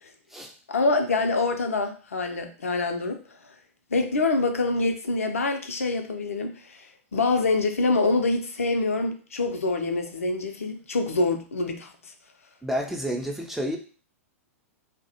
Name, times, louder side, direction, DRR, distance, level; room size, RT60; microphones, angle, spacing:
voice 1, 0.7-3.2 3.9-11.9, left 3 dB, 70° left, 5 dB, 0.4 m, -25 dB
voice 2, 12.6-13.8, equal, 5° right, 1 dB, 0.3 m, -29 dB
2.3 x 2.0 x 2.7 m, 0.39 s
figure-of-eight pair, 100°, 8 cm